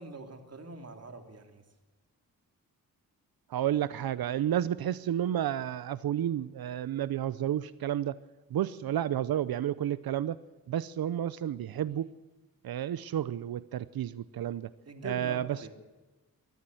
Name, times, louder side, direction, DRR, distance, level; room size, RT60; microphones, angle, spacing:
voice 1, 0.0-1.6 14.9-15.7, right 3 dB, 45° right, 6 dB, 3.1 m, -43 dB
voice 2, 3.5-8.2 8.5-10.4 10.7-12.1 12.6-14.7 15.0-15.7, right 11 dB, 80° right, 17 dB, 0.7 m, -31 dB
24.0 x 14.0 x 7.8 m, 1.2 s
cardioid pair, 85°, 36 cm